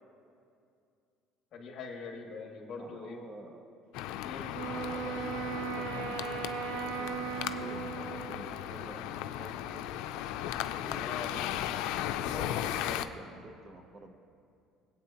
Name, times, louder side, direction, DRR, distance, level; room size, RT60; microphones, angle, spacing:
voice 1, 1.5-3.2 4.2-4.5 11.0-11.3 12.3-13.0, left 5 dB, 45° left, 0 dB, 2.2 m, -42 dB
voice 2, 2.8-3.8 4.6-6.4 7.0-10.0 10.8-11.4 12.3-14.1, right 2 dB, 30° right, 5 dB, 0.9 m, -50 dB
sound 1, 3.9-13.1, left 11 dB, 80° left, 0.4 m, -36 dB
Wind instrument woodwind instrument, 4.5-8.7, right 9 dB, 85° right, 0.5 m, -38 dB
20.5 x 8.4 x 3.0 m, 2.4 s
cardioid pair, 125°, 0 cm